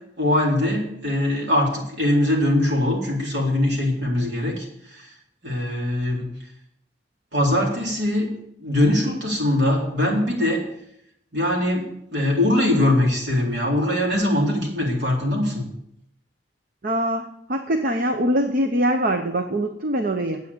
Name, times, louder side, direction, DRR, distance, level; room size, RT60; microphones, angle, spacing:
voice 1, 0.2-5.1 5.4-6.3 7.3-8.3 8.6-10.6 11.3-11.8 12.1-15.7, left 1 dB, 65° right, -2 dB, 4.0 m, -22 dB
voice 2, 16.8-20.4, right 1 dB, 50° right, 5 dB, 0.9 m, -23 dB
9.7 x 8.1 x 8.5 m, 0.75 s
head